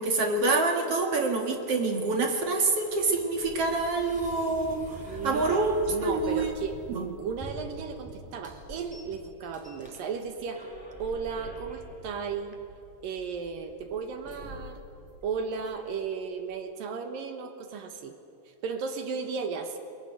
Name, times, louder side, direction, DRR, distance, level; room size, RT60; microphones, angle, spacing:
voice 1, 0.0-5.8 6.0-6.5 6.9-7.0, right 3 dB, 50° right, 4 dB, 2.0 m, -26 dB
sound 1, 2.1-16.1, equal, ahead, 4.2 m, -46 dB
voice 2, 5.1-10.7 11.0-12.6 13.0-14.8 15.2-18.2 18.6-19.8, right 5 dB, 65° right, 7 dB, 2.7 m, -35 dB
22.0 x 20.5 x 10.0 m, 2.5 s
omnidirectional pair, 4.8 m